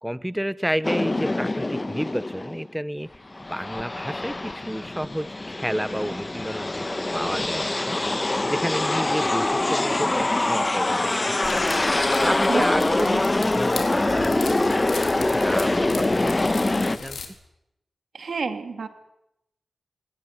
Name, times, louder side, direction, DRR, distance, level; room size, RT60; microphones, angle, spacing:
voice 1, 0.0-3.2 3.5-11.5 12.2-17.2, equal, 5° right, 17 dB, 0.8 m, -31 dB
sound 1, 0.8-2.7 3.1-17.0, left 2 dB, 30° left, 1.4 m, -24 dB
sound 2, 11.4-17.3, left 5 dB, 85° left, 3.8 m, -37 dB
voice 2, 12.9-13.2 18.1-18.9, right 5 dB, 75° right, 8 dB, 2.6 m, -29 dB
21.0 x 18.5 x 9.6 m, 0.84 s
cardioid pair, 50°, 0 cm